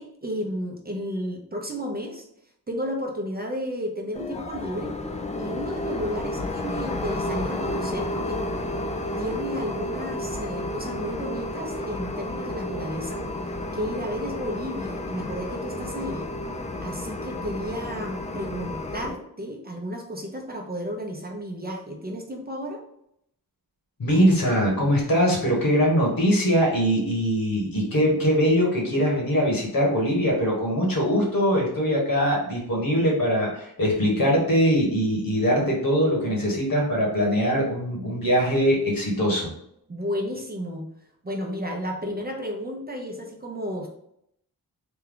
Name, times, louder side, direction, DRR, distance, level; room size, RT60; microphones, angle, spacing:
voice 1, 0.0-2.2 2.7-5.0 5.4-8.4 9.2-16.3 16.8-22.8 39.9-40.9 41.2-43.9, equal, 25° right, 0 dB, 0.6 m, -32 dB
sound 1, 4.1-19.1, left 1 dB, 20° left, 0.3 m, -31 dB
voice 2, 24.0-39.5, equal, 60° left, -2 dB, 1.4 m, -22 dB
3.4 x 2.3 x 3.6 m, 0.75 s
wide cardioid pair, 90°, 38 cm